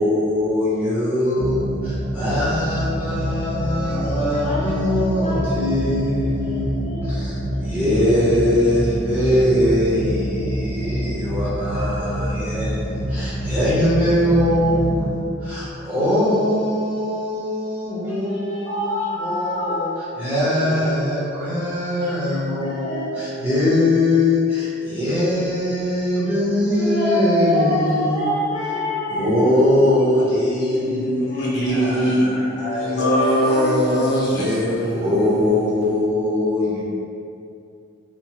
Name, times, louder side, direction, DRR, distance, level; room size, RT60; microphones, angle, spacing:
voice 1, 0.0-1.7 2.1-6.7 7.6-12.8 13.1-19.9 20.2-28.3 29.1-31.3 31.6-33.4 34.9-36.8, left 1 dB, 10° right, -12 dB, 0.8 m, -21 dB
sound 1, 1.4-15.0, equal, 85° right, 0.6 m, -26 dB
voice 2, 3.6-5.6 6.4-6.5 6.8-7.3 7.6-8.0 9.9-10.4 11.9-13.1 14.5-15.1 18.6-19.8 20.5-20.9 22.6-23.8 26.7-29.7 30.0-30.1 30.5-30.7 31.2-31.6 31.9-32.2 33.3-34.2, left 1 dB, 20° left, -11 dB, 0.4 m, -28 dB
voice 3, 31.0-36.1, equal, 60° left, -7 dB, 0.7 m, -22 dB
2.9 x 2.0 x 2.8 m, 2.5 s
head